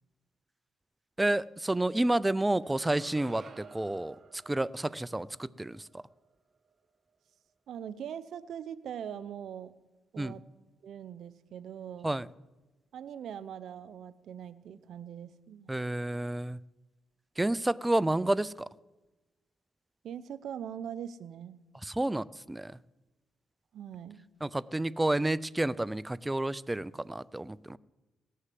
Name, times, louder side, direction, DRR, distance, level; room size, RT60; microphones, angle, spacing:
voice 1, 1.2-6.0 10.2-10.3 12.0-12.3 15.7-16.6 17.4-18.7 21.8-22.7 24.4-27.8, right 1 dB, 10° right, 19 dB, 0.4 m, -30 dB
sound 1, 2.6-6.8, right 5 dB, 45° right, 1.4 m, -54 dB
voice 2, 7.7-9.7 10.1-10.4 10.8-12.2 12.9-15.7 20.0-21.6 23.7-24.2, right 9 dB, 70° right, 16 dB, 0.7 m, -42 dB
18.0 x 6.5 x 7.6 m, 1.1 s
cardioid pair, 90°, 0 cm